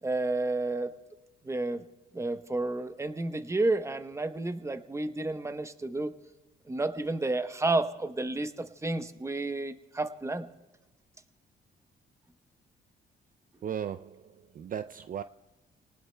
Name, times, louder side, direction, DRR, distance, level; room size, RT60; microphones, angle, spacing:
voice 1, 0.0-0.9 1.4-1.8 2.1-6.1 6.7-10.5, right 2 dB, 15° right, 0.8 m, -31 dB
voice 2, 13.6-15.2, right 9 dB, 45° right, 0.4 m, -37 dB
28.5 x 19.0 x 2.2 m
cardioid pair, 90°, 20 cm